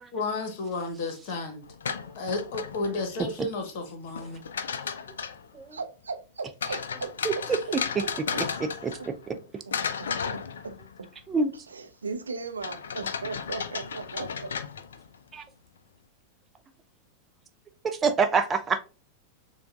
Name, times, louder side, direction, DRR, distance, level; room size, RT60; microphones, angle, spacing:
voice 1, 0.1-1.6 2.2-4.4, left 3 dB, 50° left, 1.2 m, -32 dB
sound 1, 1.6-3.2 4.2-5.5 6.6-9.4 9.7-11.1 12.6-15.2, left 6 dB, 65° left, 0.4 m, -34 dB
voice 2, 5.7-7.1 7.7-7.8 8.0-8.4 9.7-9.8 10.0-10.8 11.7-14.5, right 4 dB, 75° right, 0.5 m, -37 dB
voice 3, 17.8-18.8, right 5 dB, 20° right, 0.5 m, -25 dB
6.8 x 2.4 x 2.4 m
figure-of-eight pair, 90°, 0 cm